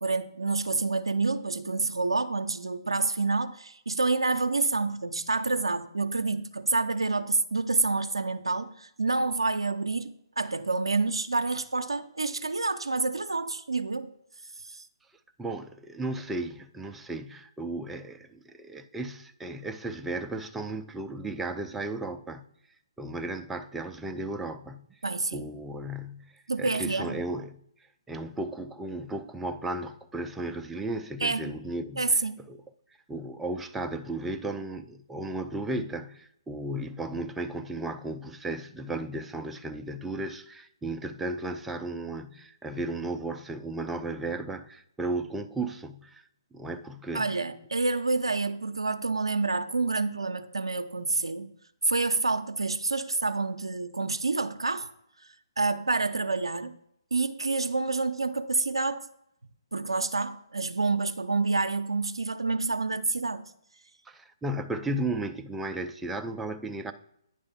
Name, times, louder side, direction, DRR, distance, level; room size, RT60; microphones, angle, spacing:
voice 1, 0.0-14.1 14.6-14.8 25.0-25.5 26.5-27.2 31.2-31.5 32.0-32.4 47.1-51.5 51.8-54.9 55.6-56.7 57.1-59.1 59.7-63.4, right 3 dB, 85° right, 0.5 m, -28 dB
voice 2, 15.4-22.5 23.0-25.0 25.3-27.6 28.1-32.2 32.5-32.6 33.1-46.2 46.5-47.4 64.1-66.9, right 2 dB, 5° right, 0.4 m, -35 dB
9.6 x 3.4 x 5.6 m
figure-of-eight pair, 135°, 3 cm